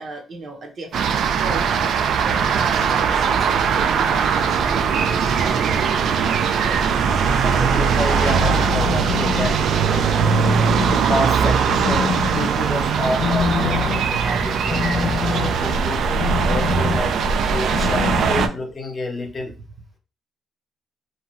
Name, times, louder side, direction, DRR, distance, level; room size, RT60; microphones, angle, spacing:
voice 1, 0.0-5.8 10.5-10.6 17.5-17.6, right 3 dB, 55° right, 4 dB, 0.7 m, -35 dB
sound 1, 0.9-18.5, right 6 dB, 70° right, 0.3 m, -20 dB
voice 2, 7.4-9.6 9.9-10.1 11.1-16.1 16.4-19.5, left 2 dB, 35° left, 3 dB, 0.8 m, -29 dB
sound 2, 7.9-18.7, left 5 dB, 85° left, 0.5 m, -27 dB
2.7 x 2.3 x 3.0 m, 0.33 s
cardioid pair, 90°, 0 cm